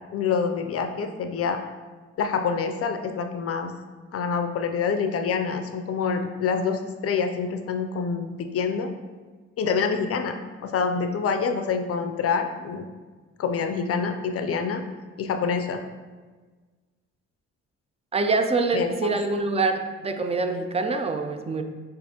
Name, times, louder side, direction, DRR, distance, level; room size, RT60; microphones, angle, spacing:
voice 1, 0.1-1.6 2.2-3.7 4.1-8.9 9.6-10.4 10.6-12.8 13.4-14.8 15.2-15.8 18.7-19.2, left 5 dB, 50° left, 6 dB, 0.4 m, -26 dB
voice 2, 18.1-21.6, right 3 dB, 20° right, 7 dB, 0.4 m, -25 dB
6.4 x 2.5 x 2.8 m, 1.4 s
cardioid pair, 90°, 30 cm